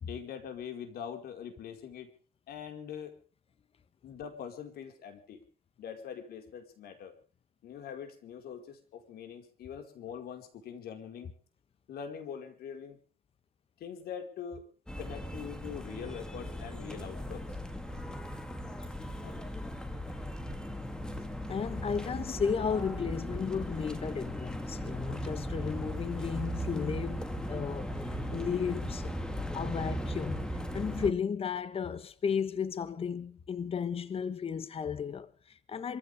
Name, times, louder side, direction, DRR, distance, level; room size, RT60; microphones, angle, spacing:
voice 1, 0.1-2.1 2.5-3.2 4.0-5.4 5.8-7.1 7.6-11.3 11.9-13.0 13.8-14.7 15.0-17.5 19.2-19.5, left 8 dB, 65° left, 4.9 m, -43 dB
sound 1, 14.9-31.1, equal, 5° left, 2.7 m, -38 dB
voice 2, 21.5-27.9 28.3-29.1 29.5-30.5 30.7-36.0, left 6 dB, 35° left, 1.3 m, -34 dB
26.5 x 15.5 x 3.5 m
cardioid pair, 110°, 17 cm